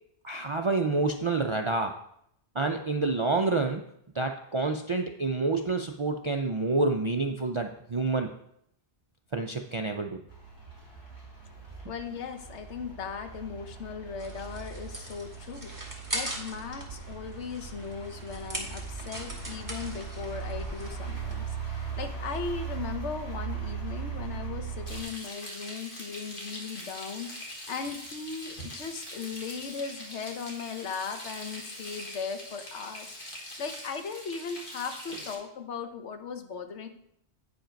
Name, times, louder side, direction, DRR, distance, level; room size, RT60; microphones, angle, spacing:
voice 1, 0.2-2.0 2.6-3.8 4.1-8.3 9.3-10.2, right 3 dB, 55° right, 4 dB, 0.3 m, -28 dB
sound 1, 10.3-25.0, right 6 dB, 20° left, 3.2 m, -39 dB
voice 2, 11.9-36.9, left 5 dB, 85° left, 7 dB, 1.2 m, -38 dB
sound 2, 14.2-22.2, right 1 dB, 15° right, 1.5 m, -41 dB
Frying (food), 24.9-35.3, left 1 dB, 50° left, 1.8 m, -42 dB
8.8 x 5.2 x 5.1 m, 0.75 s
omnidirectional pair, 1.1 m